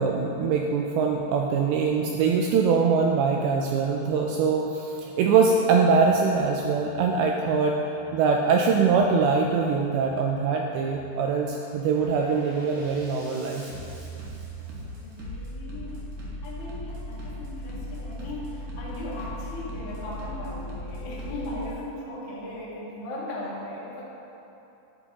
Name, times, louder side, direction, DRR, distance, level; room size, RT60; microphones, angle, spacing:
voice 1, 0.0-13.7, right 5 dB, 85° right, 1 dB, 2.2 m, -23 dB
Bass drum, 6.0-6.1 6.6-7.1 7.9-8.1 8.6-9.1 9.9-10.1 10.6-11.1 11.5-21.7, equal, 60° right, 2.0 m, -39 dB
voice 2, 15.0-16.1 16.4-24.0, left 1 dB, 70° left, -7 dB, 1.1 m, -37 dB
11.0 x 8.5 x 2.9 m, 2.9 s
omnidirectional pair, 4.9 m